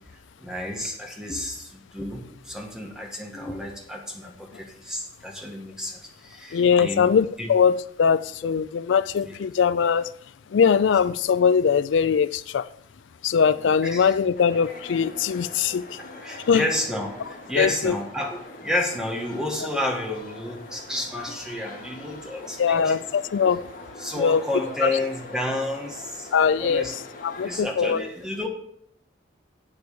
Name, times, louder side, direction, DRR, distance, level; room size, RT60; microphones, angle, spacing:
voice 1, 0.4-7.1 7.4-7.5 9.2-9.4 13.8-14.2 16.1-23.0 24.0-26.3 26.6-26.9 27.4-28.5, left 1 dB, 5° right, 1 dB, 1.8 m, -31 dB
voice 2, 6.5-10.1 10.5-12.7 13.2-16.0 16.5-16.6 17.6-17.9 22.6-23.6 24.2-24.4 24.8-24.9 26.3-26.8 27.2-28.0, left 6 dB, 75° left, 16 dB, 0.4 m, -21 dB
sound 1, 14.3-27.6, left 2 dB, 45° left, 2.1 m, -43 dB
8.1 x 8.1 x 6.9 m, 0.69 s
head